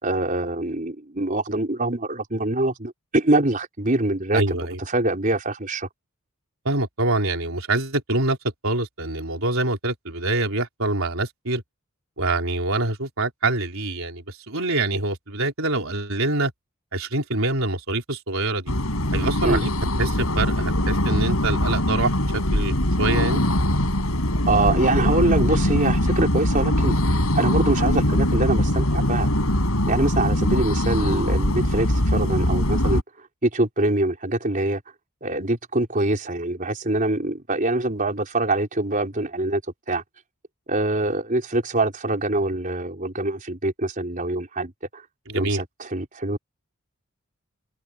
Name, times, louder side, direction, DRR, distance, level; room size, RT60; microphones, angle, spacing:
voice 1, 0.0-5.9 19.4-19.6 24.5-29.3 29.9-33.0 33.4-34.8 35.2-39.6 39.9-40.0 40.7-45.0 45.3-46.4, right 2 dB, 40° right, 4.2 m, -24 dB
voice 2, 4.3-4.8 6.6-8.4 8.6-11.6 12.2-16.5 16.9-18.7 19.1-19.7 20.0-23.4 45.3-45.6, right 2 dB, 70° right, 4.2 m, -25 dB
sound 1, 18.7-33.0, left 1 dB, 85° left, 6.5 m, -22 dB
head